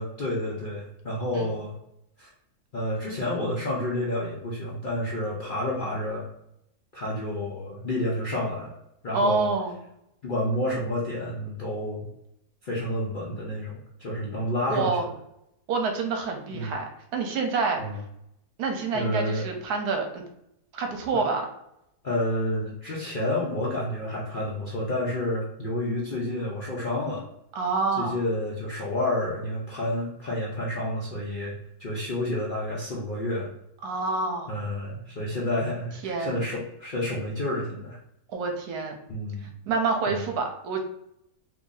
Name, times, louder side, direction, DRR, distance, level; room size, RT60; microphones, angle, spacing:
voice 1, 0.0-1.7 2.2-2.3 2.7-6.3 6.9-8.7 9.0-9.5 10.2-12.1 12.6-15.0 16.5-16.7 17.8-18.0 18.9-19.5 21.1-21.2 22.0-27.2 28.0-33.5 34.5-38.0 39.1-39.5 40.1-40.2, left 1 dB, 55° left, -5 dB, 0.5 m, -29 dB
voice 2, 9.1-9.8 14.7-15.1 15.7-17.8 18.6-20.2 20.7-21.4 27.5-28.2 33.8-34.5 36.0-36.4 38.3-38.9 39.4-40.8, right 4 dB, 75° right, 3 dB, 1.2 m, -27 dB
2.8 x 2.6 x 3.7 m, 0.80 s
omnidirectional pair, 1.7 m